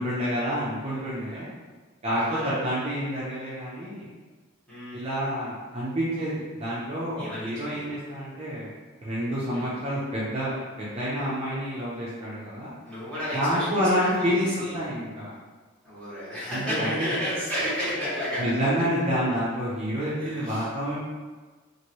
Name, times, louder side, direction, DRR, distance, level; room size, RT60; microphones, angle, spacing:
voice 1, 0.0-1.5 2.0-4.1 4.9-8.7 9.0-10.5 10.8-12.7 13.3-14.5 14.7-15.3 16.5-17.1 18.4-21.0, equal, 30° right, -8 dB, 0.5 m, -28 dB
voice 2, 2.1-2.6 4.7-5.0 7.2-7.8 9.5-9.7 12.8-14.1 14.3-14.7 15.8-18.8 20.2-20.6, equal, 5° left, -12 dB, 1.4 m, -32 dB
2.9 x 2.6 x 2.9 m, 1.4 s
head